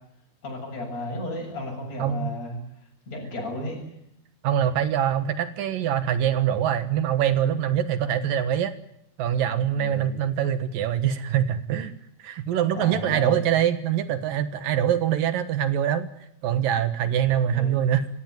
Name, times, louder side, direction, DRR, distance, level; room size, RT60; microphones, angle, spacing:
voice 1, 0.4-2.6 3.1-3.8 9.8-10.2 12.7-13.4 17.5-17.8, left 1 dB, 45° left, -2 dB, 8.7 m, -33 dB
voice 2, 4.4-8.7 9.2-11.9 12.2-16.1 16.4-18.1, right 10 dB, 70° right, 11 dB, 3.0 m, -24 dB
28.0 x 17.0 x 9.5 m, 0.76 s
omnidirectional pair, 4.2 m